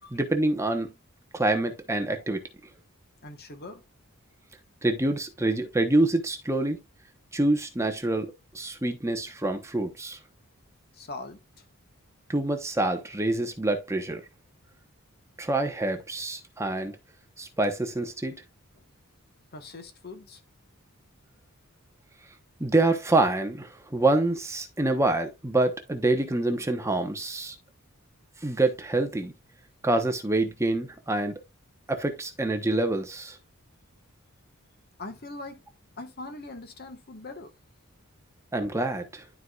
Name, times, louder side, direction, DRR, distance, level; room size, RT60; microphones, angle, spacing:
voice 1, 0.1-0.9 1.3-2.4 4.8-6.8 7.3-10.2 12.3-14.2 15.4-16.9 17.4-18.4 22.6-27.6 28.4-29.3 29.8-31.4 31.9-33.4 38.5-39.2, right 2 dB, 15° right, 1.0 m, -26 dB
voice 2, 3.2-3.8 10.9-11.7 18.7-18.8 19.5-20.4 35.0-35.6 36.0-37.5, left 2 dB, 45° left, 1.3 m, -41 dB
12.0 x 4.7 x 2.4 m
head